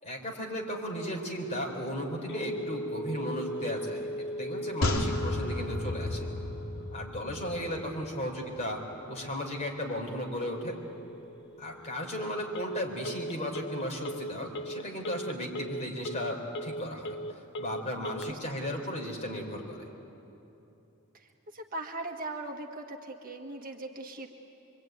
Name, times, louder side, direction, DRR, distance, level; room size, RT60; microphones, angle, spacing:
voice 1, 0.0-6.3 6.9-8.8 9.1-10.8 11.6-17.2 17.6-19.9, equal, 30° left, 0 dB, 4.2 m, -35 dB
Telephone, 2.3-18.3, equal, 55° left, 0.6 m, -40 dB
sound 1, 4.8-8.3 8.5-8.6, left 2 dB, 75° left, 3.1 m, -33 dB
voice 2, 18.3-18.7 21.1-24.3, right 2 dB, 40° right, 2 dB, 1.6 m, -40 dB
25.5 x 23.5 x 9.3 m, 3.0 s
head